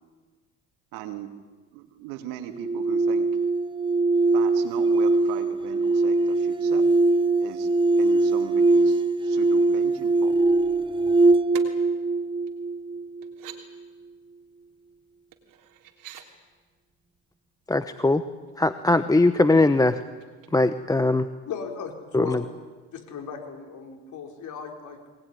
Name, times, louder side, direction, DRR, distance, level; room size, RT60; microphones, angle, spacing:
voice 1, 0.9-1.3 1.7-3.3 4.3-6.8 7.4-7.7 8.0-10.3, right 11 dB, 85° right, 7 dB, 2.7 m, -39 dB
sound 1, 2.5-13.6, right 3 dB, 15° right, 0.7 m, -22 dB
sound 2, 11.5-11.7 12.5-12.6 13.2-13.6 15.3-16.3 18.0-18.2 18.5-19.0 20.0-21.0 21.3-21.4, right 11 dB, 65° right, 3.3 m, -45 dB
voice 2, 17.7-18.2 18.6-20.0 20.5-21.3 22.1-22.4, left 2 dB, 10° left, 11 dB, 0.9 m, -20 dB
voice 3, 21.4-22.4 22.9-25.1, left 6 dB, 55° left, 3 dB, 5.0 m, -37 dB
22.5 x 20.0 x 9.9 m, 1.4 s
supercardioid pair, 95°, 35 cm